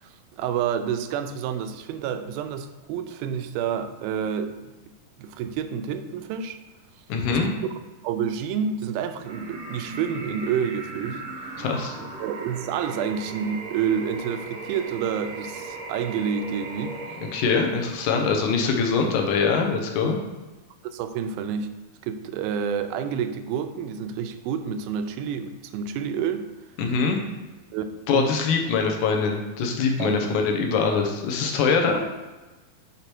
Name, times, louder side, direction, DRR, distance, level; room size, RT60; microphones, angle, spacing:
voice 1, 0.0-4.5 5.2-6.6 7.4-7.5 8.0-11.6 12.2-17.2 20.8-21.7 22.0-26.5 27.7-28.3 30.0-30.3, right 7 dB, 90° right, 9 dB, 2.4 m, -29 dB
voice 2, 7.1-7.5 11.6-11.9 17.3-20.2 26.8-27.2 28.1-32.0, left 5 dB, 70° left, 3 dB, 2.1 m, -23 dB
sound 1, 9.2-18.2, right 3 dB, 65° right, 1.3 m, -38 dB
6.9 x 5.0 x 4.5 m, 1.2 s
omnidirectional pair, 4.2 m